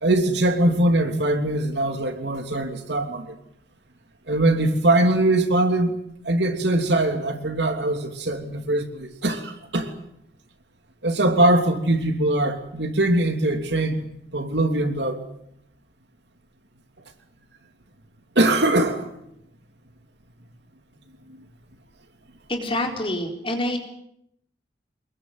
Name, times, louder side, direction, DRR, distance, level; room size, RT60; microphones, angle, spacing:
voice 1, 0.0-3.4 4.3-5.9 6.2-9.9 11.0-15.2 18.3-19.1 21.3-21.4, right 1 dB, 65° right, 5 dB, 3.1 m, -22 dB
voice 2, 22.5-23.8, left 1 dB, 30° left, 2 dB, 4.4 m, -26 dB
24.5 x 22.0 x 8.0 m, 0.76 s
head